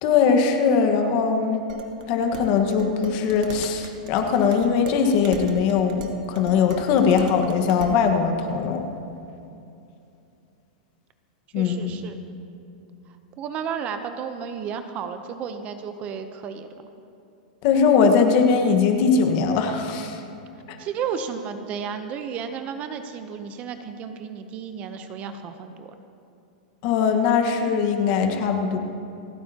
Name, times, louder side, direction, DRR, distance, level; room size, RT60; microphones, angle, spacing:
voice 1, 0.0-1.6 2.1-8.8 11.5-11.9 17.6-20.2 26.8-28.8, left 6 dB, 45° left, 5 dB, 1.4 m, -20 dB
Dishes pots and pans, 1.7-8.0, right 4 dB, 65° right, 1.4 m, -37 dB
voice 2, 11.5-12.2 13.4-16.7 20.8-25.9, right 7 dB, 30° right, 8 dB, 0.7 m, -33 dB
28.5 x 9.5 x 2.9 m, 2.7 s
supercardioid pair, 150°, 4 cm